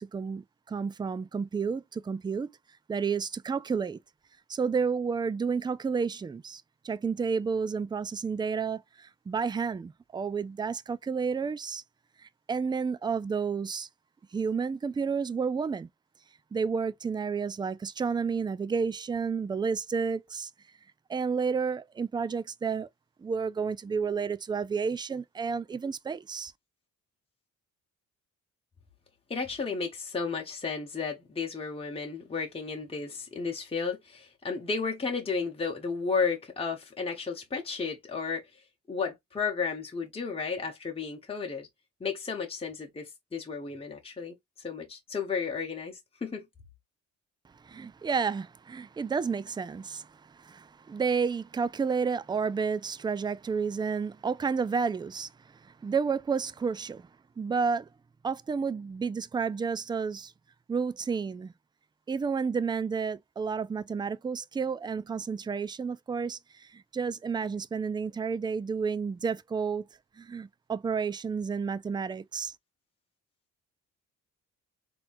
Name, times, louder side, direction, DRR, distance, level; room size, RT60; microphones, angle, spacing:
voice 1, 0.0-2.5 2.9-4.0 4.5-11.8 12.2-13.9 14.3-15.9 16.5-20.5 21.1-22.9 23.2-26.5 47.6-55.3 55.6-57.1 57.4-57.9 58.2-60.3 60.7-61.5 62.1-69.8 70.2-72.5, right 5 dB, 15° right, 0.3 m, -31 dB
voice 2, 29.3-38.5 38.9-41.7 42.0-46.4, left 5 dB, 20° left, 1.1 m, -33 dB
4.1 x 2.9 x 2.6 m
cardioid pair, 90°, 30 cm